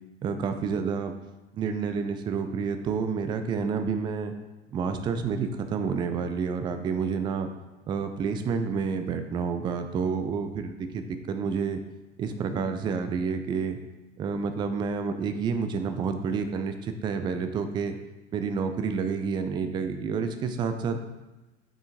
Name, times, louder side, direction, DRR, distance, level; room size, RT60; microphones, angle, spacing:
voice 1, 0.2-1.1 1.5-4.3 4.7-7.5 7.9-11.8 12.2-13.8 14.2-18.0 18.3-21.0, right 5 dB, 15° right, 8 dB, 0.3 m, -29 dB
8.6 x 4.4 x 2.6 m, 1.1 s
figure-of-eight pair, 75°, 34 cm